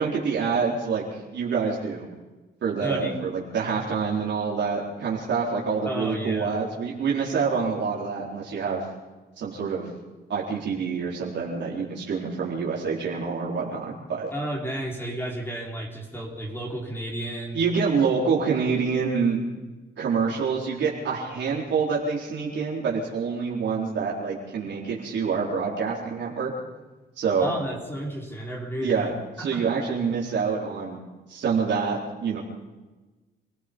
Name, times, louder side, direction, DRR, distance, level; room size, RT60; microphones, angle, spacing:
voice 1, 0.0-2.1 2.6-8.8 9.4-9.9 10.3-14.3 17.5-19.4 20.0-26.5 27.2-27.5 28.8-29.1 29.4-31.0 31.3-32.4, right 5 dB, 65° right, -4 dB, 4.4 m, -26 dB
voice 2, 2.8-3.2 5.8-6.6 14.3-17.6 27.4-29.7, right 1 dB, 10° left, -1 dB, 4.7 m, -32 dB
28.0 x 17.0 x 5.5 m, 1.2 s
cardioid pair, 90°, 20 cm